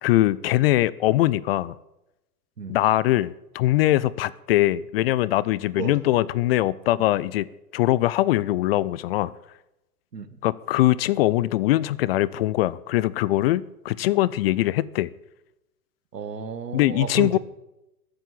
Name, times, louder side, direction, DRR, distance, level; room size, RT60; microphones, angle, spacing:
voice 1, 0.0-1.7 2.7-7.5 7.7-9.3 10.4-15.1 16.7-17.4, left 15 dB, 40° left, 20 dB, 0.5 m, -22 dB
voice 2, 16.1-17.4, right 6 dB, 90° right, 11 dB, 1.5 m, -32 dB
14.5 x 7.7 x 8.5 m, 0.92 s
hypercardioid pair, 105°, 47 cm